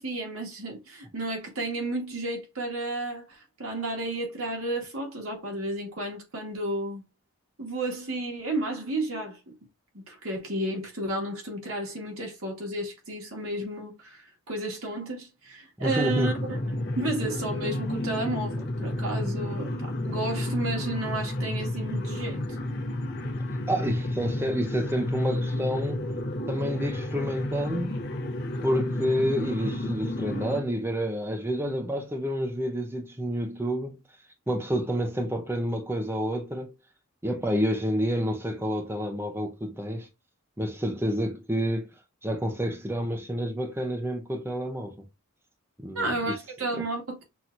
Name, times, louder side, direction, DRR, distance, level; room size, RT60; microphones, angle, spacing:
voice 1, 0.0-7.0 7.6-9.5 9.9-16.3 17.0-22.4 45.9-47.2, right 2 dB, 75° right, 1.9 m, -32 dB
voice 2, 15.8-16.3 23.7-26.1 26.5-28.0 28.6-34.0 34.5-36.7 37.2-40.1 40.6-41.9 42.2-45.0 45.8-46.4 46.7-46.8, equal, 10° right, 0.7 m, -29 dB
sound 1, 15.9-30.6, left 1 dB, 50° left, 1.0 m, -31 dB
6.0 x 2.8 x 2.5 m
head